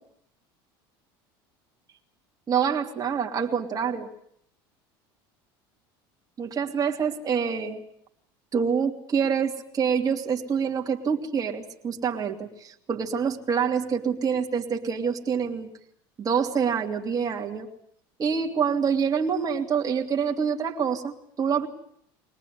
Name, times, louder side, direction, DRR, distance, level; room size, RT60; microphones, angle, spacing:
voice 1, 2.5-4.1 6.4-7.8 8.5-15.7 16.2-17.7 18.2-21.7, right 6 dB, 30° right, 0 dB, 2.9 m, -26 dB
23.0 x 19.0 x 9.5 m, 0.69 s
supercardioid pair, 95°, 12 cm